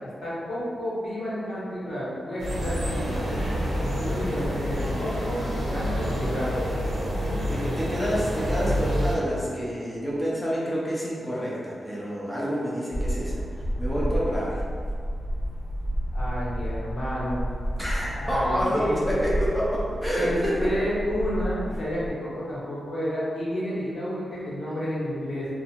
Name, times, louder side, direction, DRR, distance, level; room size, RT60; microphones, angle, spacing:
voice 1, 0.0-3.2 3.8-6.6 16.1-17.5 18.1-19.1 20.1-25.5, equal, 70° left, -10 dB, 1.1 m, -31 dB
sound 1, 2.4-9.2, equal, 90° right, 0.7 m, -28 dB
voice 2, 7.5-13.3 13.8-14.6 17.8-20.7, equal, 5° left, -7 dB, 0.5 m, -28 dB
sound 2, 12.9-22.1, equal, 30° left, 0.8 m, -30 dB
2.6 x 2.4 x 2.8 m, 2.2 s
wide cardioid pair, 115°, 0 cm